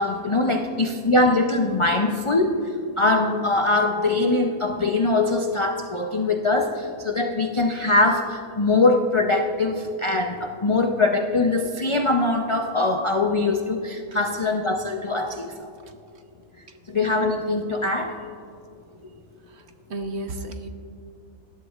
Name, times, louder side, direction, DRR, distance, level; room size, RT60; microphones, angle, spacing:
voice 1, 0.0-2.5 3.0-15.6 16.9-18.2, left 2 dB, 45° left, 3 dB, 0.4 m, -22 dB
voice 2, 19.4-20.7, right 2 dB, 55° right, 6 dB, 1.0 m, -34 dB
19.5 x 11.5 x 2.4 m, 2.5 s
omnidirectional pair, 1.4 m